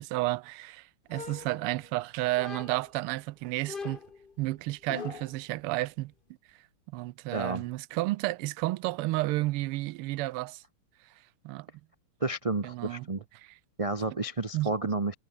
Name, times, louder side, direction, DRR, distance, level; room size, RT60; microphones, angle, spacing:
voice 1, 0.0-4.0 4.4-6.1 6.9-10.6 11.4-11.7 12.6-13.1 14.5-14.7, right 19 dB, 90° right, 1.5 m, -31 dB
sound 1, 1.1-2.0 2.4-3.0 3.7-5.4, left 5 dB, 30° left, 1.2 m, -42 dB
voice 2, 7.3-7.6 12.2-13.2 13.8-15.1, right 3 dB, 60° right, 0.3 m, -31 dB
omnidirectional pair, 2.4 m